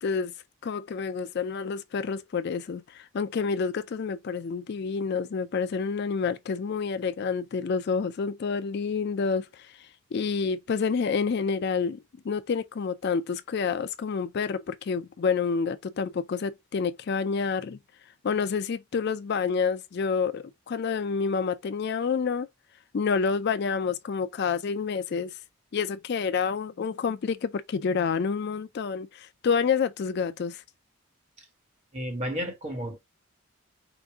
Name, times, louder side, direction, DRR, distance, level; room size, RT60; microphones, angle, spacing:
voice 1, 0.0-0.3 0.6-17.8 18.2-22.5 22.9-25.4 25.7-30.6, left 5 dB, 50° left, 0.4 m, -28 dB
voice 2, 31.9-33.0, equal, 30° right, 1.6 m, -32 dB
5.0 x 2.5 x 3.5 m
head